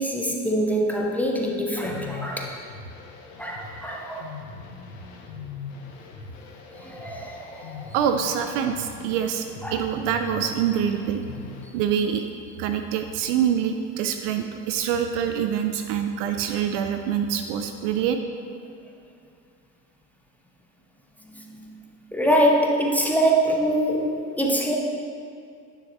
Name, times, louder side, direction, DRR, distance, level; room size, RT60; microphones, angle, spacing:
voice 1, 0.0-2.5 3.4-4.3 6.7-7.8 9.6-9.8 21.5-21.7 22.1-24.7, right 1 dB, 5° left, -2 dB, 0.7 m, -24 dB
sound 1, 1.7-11.7, left 4 dB, 60° left, 1.1 m, -41 dB
voice 2, 7.9-9.4 9.7-11.2 11.7-12.2 12.6-18.2, right 8 dB, 50° right, 7 dB, 0.5 m, -25 dB
10.0 x 6.4 x 2.8 m, 2.5 s
hypercardioid pair, 80°, 48 cm